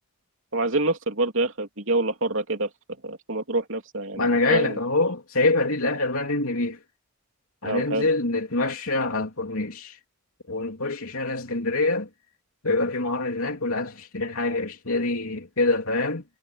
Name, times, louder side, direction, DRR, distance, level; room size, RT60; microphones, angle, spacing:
voice 1, 0.5-2.7 3.0-4.8 7.6-8.1, right 2 dB, 60° right, 3.3 m, -26 dB
voice 2, 4.2-6.8 7.6-10.0 10.5-12.1 12.6-16.2, left 2 dB, 70° left, 3.2 m, -25 dB
head